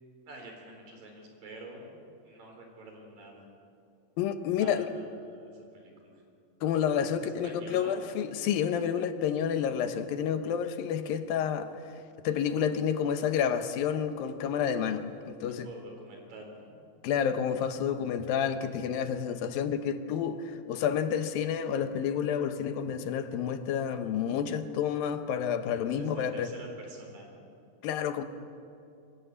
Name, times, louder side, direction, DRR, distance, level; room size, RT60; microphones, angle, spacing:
voice 1, 0.3-1.9 2.2-3.5 4.5-6.2 7.2-8.1 15.6-16.8 26.0-27.5, right 2 dB, 75° right, 2 dB, 5.7 m, -48 dB
voice 2, 4.2-4.9 6.6-11.8 12.2-15.7 17.0-26.5 27.8-28.2, left 8 dB, 90° left, 9 dB, 2.9 m, -29 dB
25.0 x 17.0 x 8.4 m, 2.5 s
omnidirectional pair, 4.0 m